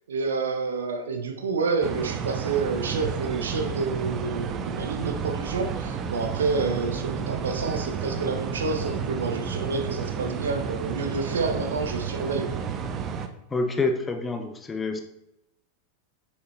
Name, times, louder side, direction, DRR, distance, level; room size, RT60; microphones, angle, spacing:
voice 1, 0.1-12.6, right 4 dB, 65° right, 5 dB, 1.2 m, -29 dB
sound 1, 1.8-13.3, right 6 dB, 30° right, 0.8 m, -31 dB
voice 2, 13.5-15.0, left 3 dB, 15° left, 6 dB, 0.9 m, -27 dB
6.9 x 6.4 x 4.3 m, 0.85 s
figure-of-eight pair, 90°, 0 cm